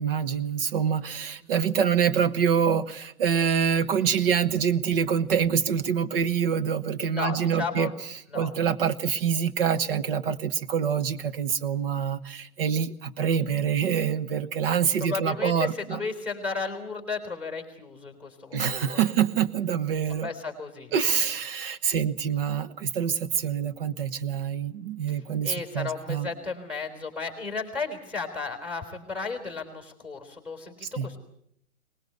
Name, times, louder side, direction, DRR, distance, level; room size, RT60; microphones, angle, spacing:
voice 1, 0.0-7.9 8.3-16.0 18.5-20.3 20.9-26.3 30.8-31.1, right 7 dB, 40° right, 11 dB, 1.3 m, -26 dB
voice 2, 7.0-8.0 8.3-8.5 15.0-19.0 20.1-21.2 25.4-31.2, left 4 dB, 5° right, 4 dB, 4.0 m, -34 dB
23.0 x 20.0 x 8.1 m, 0.71 s
figure-of-eight pair, 135°, 43 cm